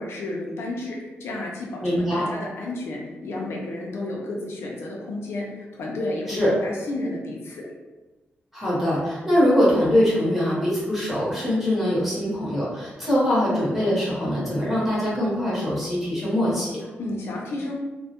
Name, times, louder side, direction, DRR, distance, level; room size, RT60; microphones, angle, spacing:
voice 1, 0.0-7.7 17.0-17.7, left 2 dB, 75° left, -2 dB, 0.5 m, -32 dB
voice 2, 1.8-2.3 6.3-6.5 8.5-16.9, equal, 5° right, -8 dB, 0.8 m, -23 dB
2.2 x 2.1 x 2.8 m, 1.2 s
wide cardioid pair, 160°, 4 cm